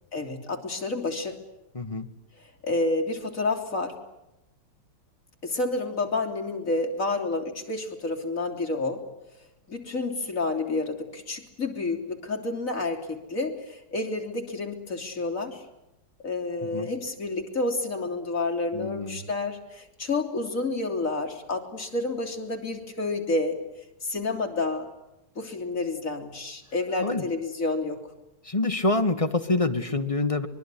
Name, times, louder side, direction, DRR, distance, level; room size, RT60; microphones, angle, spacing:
voice 1, 0.1-1.3 2.4-3.9 5.4-9.0 9.7-15.6 16.2-23.6 24.0-24.9 25.3-28.0, left 2 dB, 35° left, 3 dB, 3.5 m, -29 dB
voice 2, 1.7-2.1 16.7-16.9 18.7-19.2 27.0-27.2 28.4-30.5, left 2 dB, 20° left, 7 dB, 1.2 m, -26 dB
24.5 x 22.5 x 9.9 m, 0.88 s
omnidirectional pair, 2.4 m